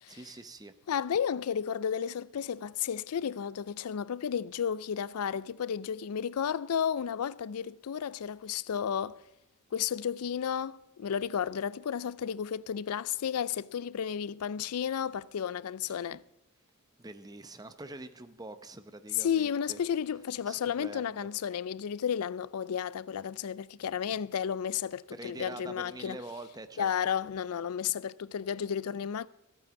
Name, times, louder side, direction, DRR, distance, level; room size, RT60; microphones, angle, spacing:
voice 1, 0.1-0.7 15.8-16.1 17.0-19.8 20.5-21.3 24.1-24.2 25.1-26.9, right 2 dB, 15° right, 0.7 m, -45 dB
voice 2, 0.9-9.2 9.7-16.2 19.2-26.2 26.8-29.3, left 8 dB, 90° left, 0.4 m, -32 dB
14.5 x 8.6 x 6.8 m
head